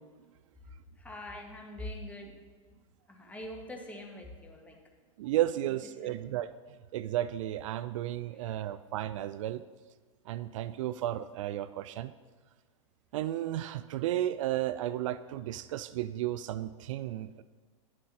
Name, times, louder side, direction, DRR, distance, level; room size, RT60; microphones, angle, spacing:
voice 1, 1.0-2.4 3.1-4.8 5.7-5.8 6.0-6.2 8.3-8.7, left 1 dB, 10° left, 0 dB, 1.8 m, -44 dB
voice 2, 5.2-6.5 6.9-9.6 10.3-12.1 13.1-17.4, right 13 dB, 70° right, 15 dB, 0.4 m, -33 dB
11.0 x 7.7 x 4.2 m, 1.4 s
hypercardioid pair, 105°, 17 cm